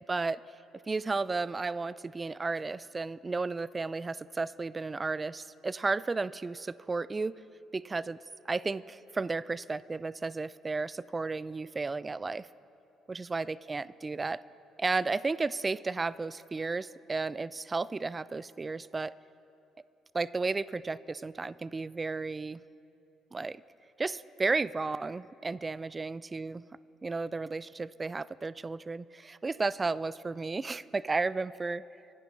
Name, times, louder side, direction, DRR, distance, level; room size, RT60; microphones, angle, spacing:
voice 1, 0.1-0.4 0.9-7.3 7.7-8.2 8.5-12.5 13.1-14.4 14.8-19.1 20.1-22.6 23.3-23.6 24.0-26.6 27.0-31.8, right 3 dB, 25° right, 20 dB, 0.3 m, -33 dB
24.5 x 10.0 x 4.1 m, 2.8 s
figure-of-eight pair, 45°, 0 cm